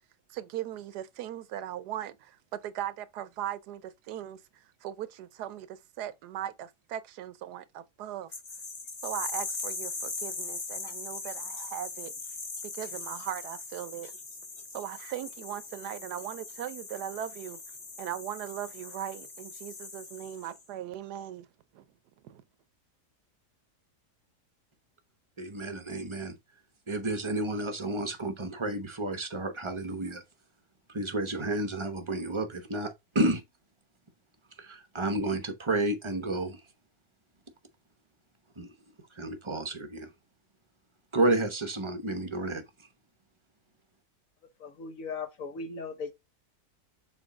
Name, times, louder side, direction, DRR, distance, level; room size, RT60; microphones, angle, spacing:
voice 1, 0.3-4.4 4.8-8.4 9.0-12.1 12.7-14.1 14.7-17.6 18.0-21.5 21.7-21.8 22.2-22.4, right 11 dB, 80° right, 1.3 m, -38 dB
sound 1, 8.3-20.6, left 3 dB, 45° left, 1.7 m, -40 dB
voice 2, 25.4-26.3 26.9-30.2 30.9-33.4 34.6-36.6 38.6-38.7 39.2-40.1 41.1-42.6, right 2 dB, 25° right, 0.7 m, -31 dB
voice 3, 44.6-46.1, left 4 dB, 60° left, 1.5 m, -38 dB
7.1 x 3.4 x 4.0 m
omnidirectional pair, 1.7 m